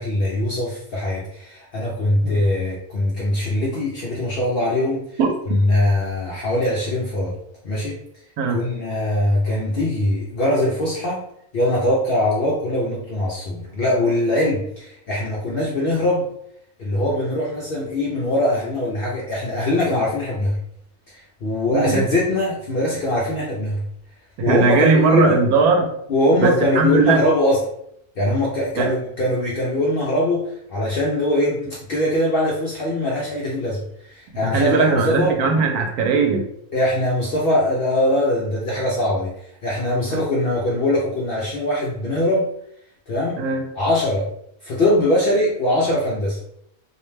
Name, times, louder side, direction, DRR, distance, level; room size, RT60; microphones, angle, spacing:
voice 1, 0.0-5.1 5.5-7.4 7.6-8.0 8.5-11.2 11.5-16.3 16.8-20.6 21.1-23.8 24.4-25.4 26.1-27.6 28.2-35.4 36.7-39.3 39.6-42.5 43.1-43.4 43.8-44.3 44.6-46.4, left 1 dB, 65° left, -4 dB, 0.5 m, -21 dB
voice 2, 21.7-22.0 24.5-25.9 26.4-27.2 28.8-28.9 34.5-36.4 40.1-40.2 43.4-43.6, right 4 dB, 90° right, 3 dB, 1.1 m, -19 dB
2.7 x 2.1 x 3.1 m, 0.72 s
omnidirectional pair, 1.5 m